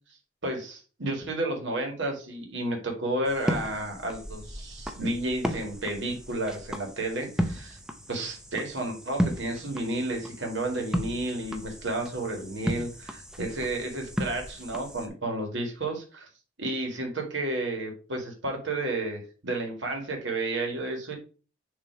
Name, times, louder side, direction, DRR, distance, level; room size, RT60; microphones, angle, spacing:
voice 1, 0.4-7.8 8.1-16.3 16.6-21.2, right 2 dB, 60° right, 2 dB, 1.8 m, -32 dB
sound 1, 3.3-15.1, equal, 5° right, 0.6 m, -35 dB
7.0 x 3.1 x 4.6 m, 0.36 s
head